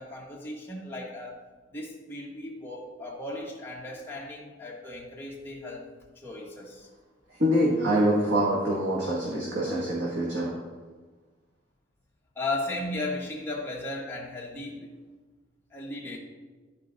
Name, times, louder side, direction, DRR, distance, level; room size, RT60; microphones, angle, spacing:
voice 1, 0.0-1.4 1.7-5.8 6.2-6.9 12.3-14.9 15.7-16.2, left 2 dB, 10° left, -3 dB, 1.3 m, -36 dB
voice 2, 7.4-10.5, equal, 70° right, -5 dB, 1.6 m, -25 dB
12.5 x 4.5 x 4.0 m, 1.3 s
head